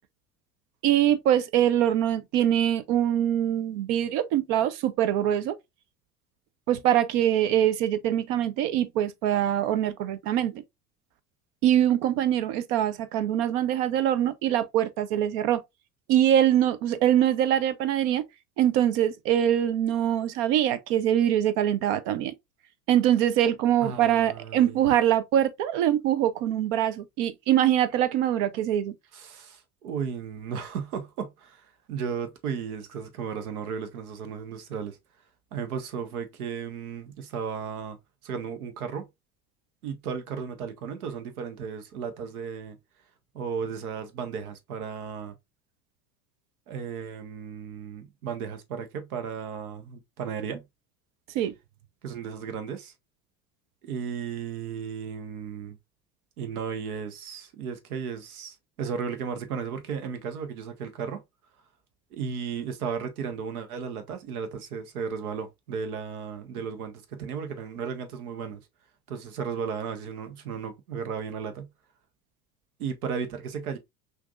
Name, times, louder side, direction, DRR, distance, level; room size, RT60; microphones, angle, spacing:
voice 1, 0.8-5.5 6.7-10.6 11.6-15.6 16.1-18.2 18.6-22.3 22.9-28.9 51.3-51.5, right 11 dB, 55° right, 0.7 m, -23 dB
voice 2, 23.8-24.8 29.1-35.0 35.5-38.0 38.2-39.1 39.8-42.8 43.3-45.3 46.7-50.6 52.0-52.9 53.8-55.8 56.4-61.2 62.1-68.7 69.1-71.7 72.8-73.8, right 6 dB, 70° right, 1.1 m, -35 dB
5.8 x 2.7 x 2.4 m
figure-of-eight pair, 75°, 45 cm